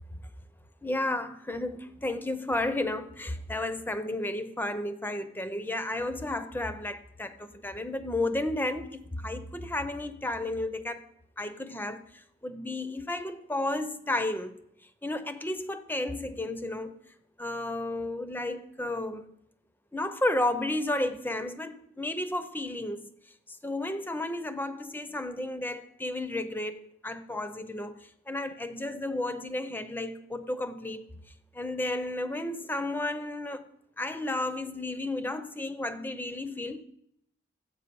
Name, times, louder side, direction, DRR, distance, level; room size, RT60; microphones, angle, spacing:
voice 1, 0.8-11.0 11.4-12.0 12.4-14.6 15.0-17.0 17.4-19.3 19.9-23.1 23.6-31.1 31.5-33.6 34.0-36.8, left 1 dB, 10° left, 0.6 m, -32 dB
13.5 x 8.2 x 5.3 m
head